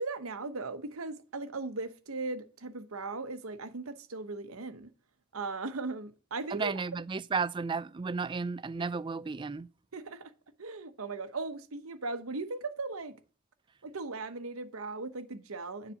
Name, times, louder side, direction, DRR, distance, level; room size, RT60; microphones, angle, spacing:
voice 1, 0.0-4.9 5.3-6.7 9.9-10.3 10.6-13.2 13.8-15.9, right 3 dB, 80° right, 1.0 m, -38 dB
voice 2, 6.5-9.7, right 4 dB, 25° right, 0.3 m, -33 dB
9.8 x 4.1 x 7.0 m
head